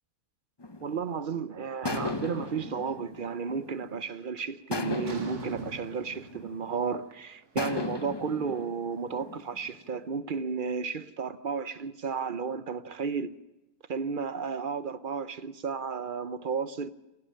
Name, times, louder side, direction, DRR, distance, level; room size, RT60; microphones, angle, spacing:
sound 1, 0.6-1.3 1.9-4.1 4.7-7.0 7.6-9.8, left 3 dB, 20° left, 0.7 m, -37 dB
voice 1, 0.8-13.4 13.9-16.9, right 5 dB, 45° right, 0.7 m, -33 dB
sound 2, 1.8-3.4 3.7-4.2 5.0-8.1, right 4 dB, 80° right, 2.5 m, -45 dB
27.5 x 11.0 x 8.7 m
omnidirectional pair, 1.6 m